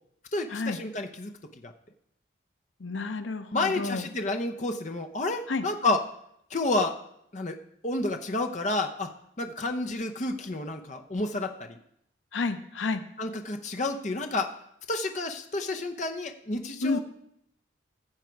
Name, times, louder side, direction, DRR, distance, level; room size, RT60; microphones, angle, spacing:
voice 1, 0.3-1.3 1.6-1.7 3.5-6.0 6.5-6.9 7.3-7.6 7.8-9.1 9.4-11.8 13.2-14.5 14.9-17.0, left 2 dB, 40° left, 5 dB, 0.7 m, -30 dB
voice 2, 2.8-4.0 5.5-5.6 12.3-13.0 16.8-17.0, left 3 dB, 85° left, 10 dB, 0.7 m, -30 dB
14.5 x 7.4 x 4.6 m, 0.75 s
head